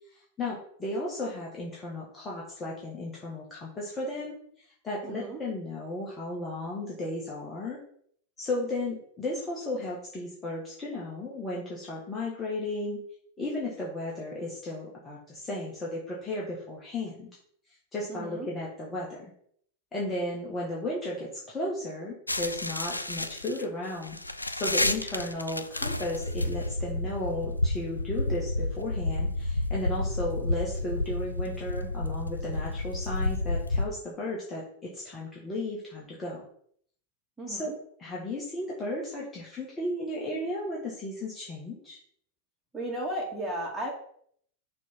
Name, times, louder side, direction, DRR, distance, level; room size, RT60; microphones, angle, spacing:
voice 1, 0.1-7.8 8.4-13.0 13.4-17.3 17.9-19.3 19.9-24.2 24.5-36.4 37.5-37.7 38.0-42.0, left 1 dB, 20° left, -4 dB, 1.6 m, -34 dB
voice 2, 5.0-5.4 18.1-18.5 37.4-37.7 42.7-43.9, right 1 dB, 10° right, -3 dB, 2.3 m, -34 dB
sound 1, 22.3-33.9, left 2 dB, 85° left, 0.4 m, -30 dB
6.2 x 3.4 x 5.7 m, 0.63 s
figure-of-eight pair, 90°, 0 cm